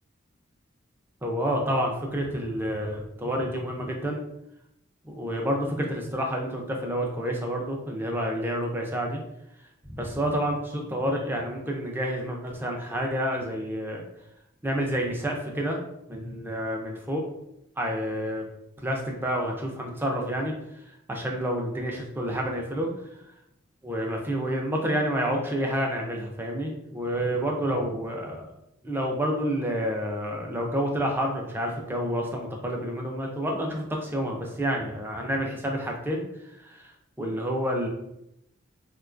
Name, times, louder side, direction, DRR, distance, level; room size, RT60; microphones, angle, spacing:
voice 1, 1.2-4.2 5.0-9.2 9.9-14.0 14.6-15.8 16.1-17.3 17.8-18.5 18.8-20.5 21.1-22.9 23.8-28.5 28.8-36.2 36.6-36.9 37.2-37.9, equal, 10° right, 0 dB, 0.3 m, -29 dB
3.7 x 2.2 x 2.4 m, 0.81 s
head